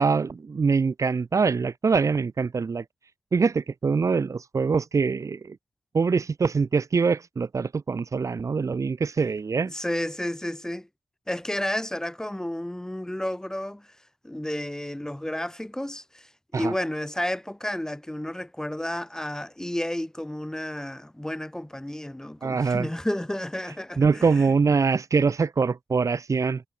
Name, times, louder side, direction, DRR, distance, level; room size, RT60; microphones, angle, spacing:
voice 1, 0.0-2.8 3.3-5.6 5.9-9.7 16.5-16.7 22.4-22.9 24.0-26.6, right 5 dB, 55° right, 2.4 m, -24 dB
voice 2, 9.7-10.9 11.3-13.9 14.2-24.5, left 1 dB, 10° left, 1.8 m, -31 dB
wide cardioid pair, 90°, 7 cm